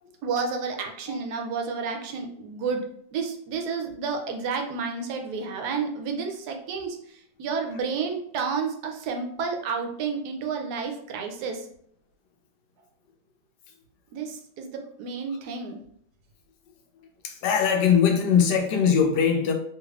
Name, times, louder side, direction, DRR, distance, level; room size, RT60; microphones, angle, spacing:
voice 1, 0.2-2.8 3.1-11.7 14.1-15.8, right 5 dB, 75° right, 4 dB, 1.1 m, -31 dB
voice 2, 17.2-19.5, left 7 dB, 85° left, 4 dB, 1.2 m, -21 dB
3.2 x 3.2 x 2.4 m, 0.66 s
omnidirectional pair, 1.7 m